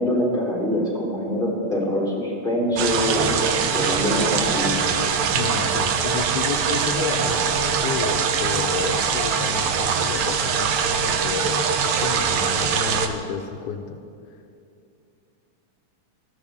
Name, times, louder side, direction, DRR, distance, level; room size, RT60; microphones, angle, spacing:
voice 1, 0.0-4.7, left 1 dB, ahead, -6 dB, 3.1 m, -24 dB
sound 1, 2.8-13.1, right 6 dB, 80° right, 1.2 m, -22 dB
voice 2, 5.3-14.0, left 6 dB, 80° left, 4 dB, 2.1 m, -31 dB
20.0 x 14.0 x 3.5 m, 2.5 s
omnidirectional pair, 3.5 m